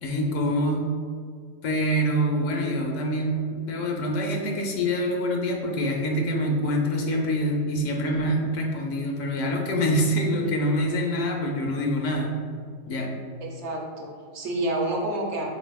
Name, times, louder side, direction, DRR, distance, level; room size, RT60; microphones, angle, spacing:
voice 1, 0.0-0.9 1.6-12.3 12.9-13.1, equal, 75° left, 1 dB, 0.9 m, -25 dB
voice 2, 13.4-15.5, right 1 dB, 65° right, -1 dB, 0.8 m, -29 dB
4.2 x 4.0 x 2.3 m, 2.1 s
omnidirectional pair, 1.4 m